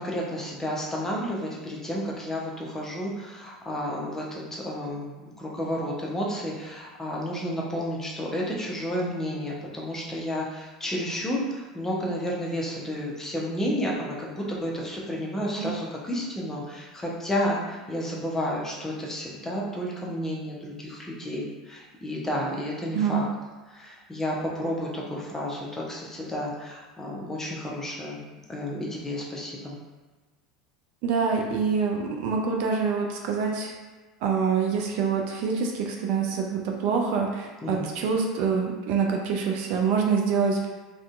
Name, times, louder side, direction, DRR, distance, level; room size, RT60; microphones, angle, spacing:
voice 1, 0.0-23.2 23.7-28.2 28.5-29.8 37.6-37.9, equal, 15° left, -3 dB, 0.6 m, -31 dB
voice 2, 22.9-23.2 31.0-33.7 34.2-40.7, right 5 dB, 55° right, 1 dB, 0.3 m, -26 dB
2.5 x 2.1 x 2.4 m, 1.3 s
figure-of-eight pair, 80°, 3 cm